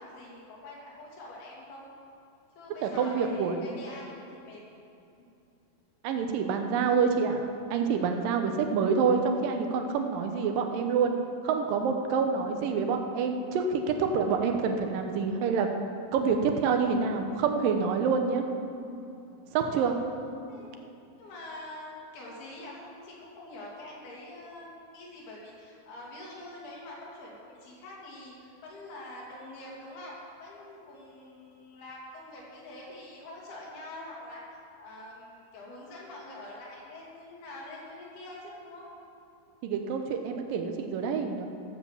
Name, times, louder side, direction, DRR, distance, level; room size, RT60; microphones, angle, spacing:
voice 1, 0.0-1.9 2.6-4.6 5.2-5.3 10.1-10.3 12.2-12.3 19.7-19.9 20.5-20.7 21.2-34.4 34.8-38.9, left 1 dB, 80° left, -4 dB, 4.5 m, -45 dB
voice 2, 2.8-3.7 6.0-11.2 11.4-15.7 16.1-18.4 19.5-19.9 39.6-41.5, right 5 dB, 70° right, 5 dB, 2.4 m, -27 dB
14.5 x 7.6 x 7.2 m, 2.7 s
omnidirectional pair, 4.5 m